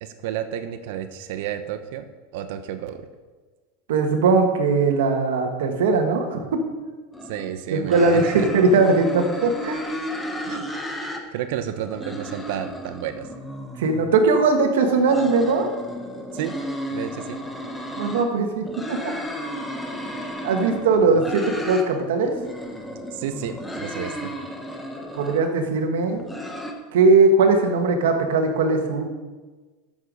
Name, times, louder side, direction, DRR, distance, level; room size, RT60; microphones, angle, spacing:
voice 1, 0.0-3.0 7.3-8.5 10.5-10.7 11.3-13.3 16.3-16.6 16.9-17.4 23.1-24.4, right 10 dB, 70° right, 9 dB, 1.0 m, -31 dB
voice 2, 3.9-6.6 7.7-9.8 13.8-15.7 18.0-19.1 20.4-22.3 25.2-26.2 26.9-29.0, right 3 dB, 90° right, 4 dB, 1.9 m, -20 dB
sound 1, 7.1-7.5 7.9-11.2 11.5-14.1 14.8-18.3 18.6-21.9 22.2-25.5 26.0-26.7, equal, 5° left, 1.4 m, -33 dB
13.5 x 7.3 x 5.5 m, 1.3 s
supercardioid pair, 145°, 0 cm